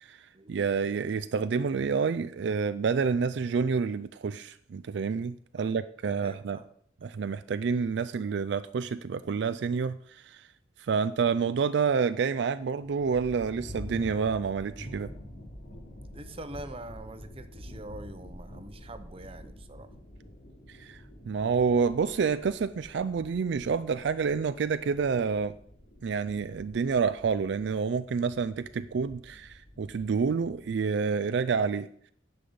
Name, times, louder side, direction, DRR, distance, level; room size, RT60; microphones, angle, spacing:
voice 1, 0.5-6.6 7.0-10.5 10.8-15.1 20.7-25.5 26.0-31.9, right 5 dB, 65° right, 13 dB, 0.4 m, -28 dB
voice 2, 6.2-6.7 15.7-15.8 16.1-19.9 26.5-26.6, right 2 dB, 30° right, 10 dB, 0.7 m, -45 dB
sound 1, 12.8-30.8, left 1 dB, 65° left, 3.1 m, -47 dB
10.0 x 5.4 x 7.9 m, 0.64 s
head